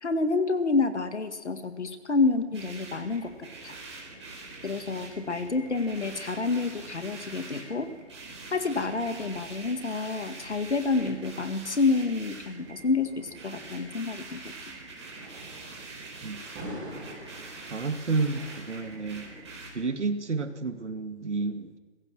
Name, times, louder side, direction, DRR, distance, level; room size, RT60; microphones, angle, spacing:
voice 1, 0.0-3.8 4.6-7.9 8.5-14.4, left 3 dB, 70° left, 9 dB, 2.2 m, -28 dB
sound 1, 1.5-19.4, equal, 5° right, 1.3 m, -51 dB
sound 2, 2.5-19.7, right 3 dB, 25° right, 4.5 m, -44 dB
voice 2, 17.7-19.3 19.7-21.8, right 4 dB, 75° right, 7 dB, 2.4 m, -30 dB
25.5 x 17.0 x 6.3 m, 1.5 s
hypercardioid pair, 175°, 35 cm